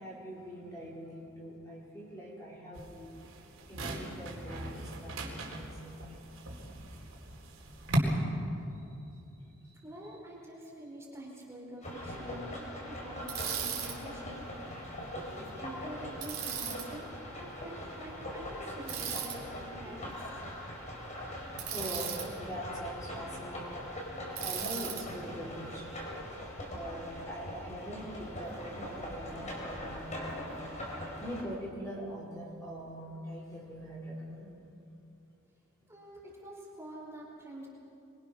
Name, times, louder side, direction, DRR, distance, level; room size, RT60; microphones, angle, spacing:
voice 1, 0.0-3.2 3.7-6.2 9.6-9.7 15.0-15.5 19.8-19.9 21.7-23.9 24.4-34.5, equal, 15° left, -5 dB, 4.7 m, -43 dB
sound 1, 2.7-8.0, right 2 dB, 70° right, 4.2 m, -41 dB
voice 2, 9.8-14.5 15.1-20.3 35.9-37.7, equal, 10° right, -4 dB, 4.5 m, -47 dB
sound 2, 11.8-31.4, left 1 dB, 35° left, 4.9 m, -41 dB
Bicycle, 13.3-13.9 16.2-16.8 18.9-19.4 21.6-22.3 24.4-25.0, right 9 dB, 45° right, 3.9 m, -36 dB
24.0 x 24.0 x 6.3 m, 2.7 s
head